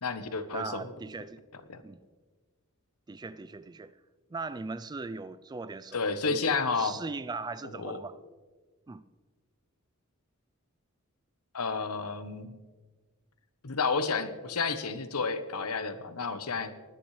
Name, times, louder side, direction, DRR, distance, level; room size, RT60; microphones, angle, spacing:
voice 1, 0.0-0.8 1.7-1.8 5.9-7.0 7.7-8.0 11.5-12.5 13.6-16.7, left 4 dB, 85° left, 1.0 m, -31 dB
voice 2, 0.5-1.4 1.8-2.0 3.1-3.9 4.3-8.2 8.9-9.0, right 3 dB, 20° right, 0.3 m, -39 dB
20.0 x 10.0 x 3.2 m
head